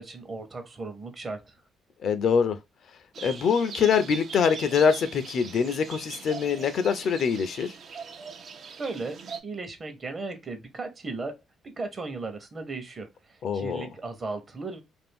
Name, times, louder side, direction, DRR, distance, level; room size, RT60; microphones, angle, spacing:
voice 1, 0.0-1.5 8.8-11.4 11.8-14.8, right 3 dB, 35° right, 0.8 m, -36 dB
voice 2, 2.0-2.6 3.2-7.7 13.4-13.9, left 6 dB, 65° left, 0.4 m, -24 dB
sound 1, 3.1-9.4, right 6 dB, 60° right, 0.4 m, -41 dB
2.5 x 2.4 x 3.4 m
cardioid pair, 90°, 0 cm